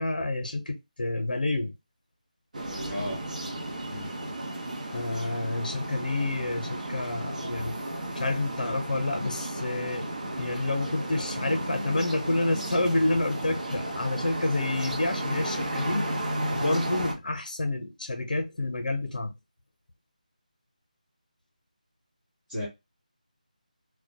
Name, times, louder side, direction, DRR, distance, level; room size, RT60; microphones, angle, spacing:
voice 1, 0.0-1.7 4.9-7.8 8.1-10.1 10.4-16.1 16.5-19.3, left 2 dB, 75° left, 0.6 m, -29 dB
sound 1, 2.5-17.1, right 1 dB, 60° right, 0.8 m, -33 dB
voice 2, 2.9-3.3 3.9-4.1 22.5-22.7, left 1 dB, 5° right, 1.0 m, -34 dB
2.2 x 2.1 x 2.7 m
figure-of-eight pair, 170°, 4 cm